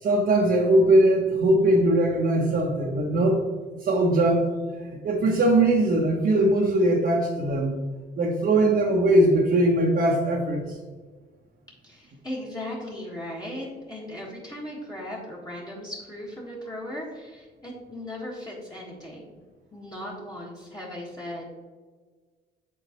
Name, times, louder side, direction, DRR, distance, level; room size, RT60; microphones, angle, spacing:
voice 1, 0.0-3.4 3.8-4.5 4.8-7.8 8.2-10.6, right 1 dB, 55° right, -2 dB, 1.0 m, -21 dB
voice 2, 11.8-19.3 19.7-21.5, left 1 dB, 20° left, -6 dB, 1.6 m, -37 dB
8.0 x 4.0 x 3.0 m, 1.5 s
cardioid pair, 90°, 20 cm